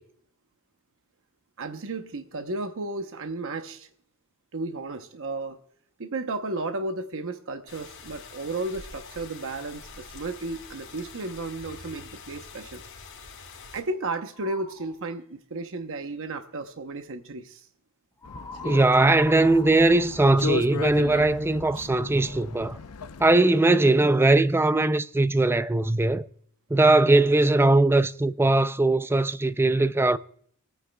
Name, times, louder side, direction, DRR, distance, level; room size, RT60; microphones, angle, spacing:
voice 1, 1.6-3.9 4.5-5.6 6.0-12.8 13.7-17.7 21.7-21.9, right 2 dB, 65° right, 0.8 m, -33 dB
sound 1, 7.7-13.8, left 4 dB, 60° left, 3.4 m, -45 dB
sound 2, 14.3-14.9 18.2-21.0, left 1 dB, 10° left, 1.5 m, -41 dB
sound 3, 18.2-23.4, left 4 dB, 85° left, 0.6 m, -36 dB
voice 2, 18.6-22.8 23.2-26.3 26.7-30.2, right 2 dB, 10° right, 0.4 m, -20 dB
27.5 x 9.3 x 2.3 m
head